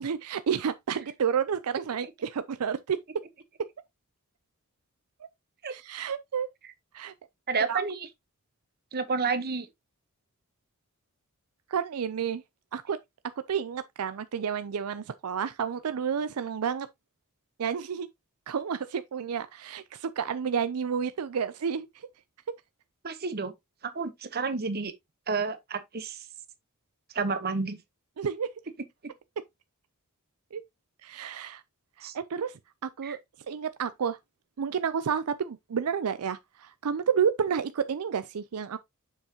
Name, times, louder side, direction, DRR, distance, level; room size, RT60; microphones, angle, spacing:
voice 1, 0.0-3.0 5.7-6.5 6.9-7.1 7.7-7.8 11.7-12.4 12.7-13.0 13.5-16.9 17.6-18.1 18.5-22.1 28.2-28.5 30.5-30.6 31.0-31.6 32.0-33.2 33.5-34.2 34.6-38.8, right 7 dB, 80° right, 0.5 m, -30 dB
voice 2, 7.5-8.1 8.9-9.7 23.0-23.5 23.8-24.9 25.3-26.2 27.1-27.8 32.0-32.1 33.0-33.2, right 4 dB, 45° right, 1.0 m, -30 dB
7.1 x 5.5 x 2.8 m
head